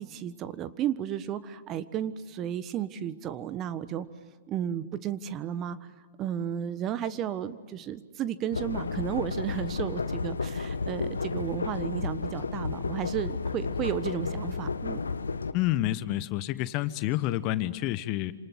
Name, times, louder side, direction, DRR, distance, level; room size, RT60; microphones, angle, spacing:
voice 1, 0.0-4.1 4.5-5.9 6.2-15.0, right 10 dB, 30° right, 14 dB, 1.3 m, -33 dB
sound 1, 8.5-15.5, left 4 dB, 85° left, 1.2 m, -32 dB
voice 2, 15.5-18.3, left 15 dB, 40° left, 14 dB, 1.1 m, -28 dB
28.0 x 27.0 x 7.9 m, 1.4 s
figure-of-eight pair, 110°, 0 cm